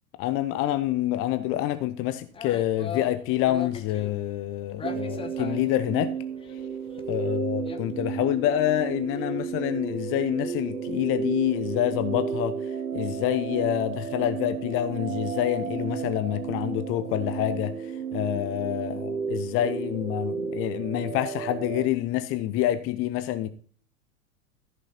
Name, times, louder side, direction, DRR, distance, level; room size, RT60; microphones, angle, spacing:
voice 1, 0.2-6.1 7.1-12.6 12.9-23.5, left 13 dB, 30° left, 0.8 m, -27 dB
sound 1, 2.3-4.3 4.8-6.5 6.9-7.0 7.3-7.8 8.2-8.3 8.6-8.8 9.0-9.2, left 7 dB, 10° left, 1.0 m, -38 dB
sound 2, 4.8-21.9, right 6 dB, 85° right, 0.7 m, -33 dB
14.5 x 6.4 x 4.2 m
figure-of-eight pair, 90°, 44 cm